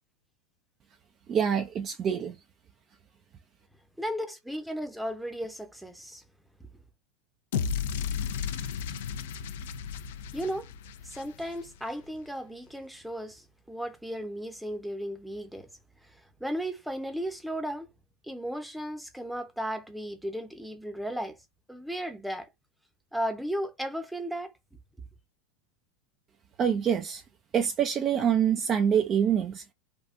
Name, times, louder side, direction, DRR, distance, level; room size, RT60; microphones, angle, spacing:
voice 1, 1.3-2.4 26.6-27.2 27.5-29.6, right 8 dB, 30° right, 0.4 m, -25 dB
voice 2, 4.0-6.2 6.6-6.8 10.3-10.7 11.0-15.7 16.0-17.9 18.2-21.4 21.7-22.5 23.1-24.5, equal, ahead, 0.7 m, -35 dB
sound 1, 7.5-11.8, left 7 dB, 80° left, 0.4 m, -34 dB
3.5 x 2.3 x 2.5 m
supercardioid pair, 125°, 0 cm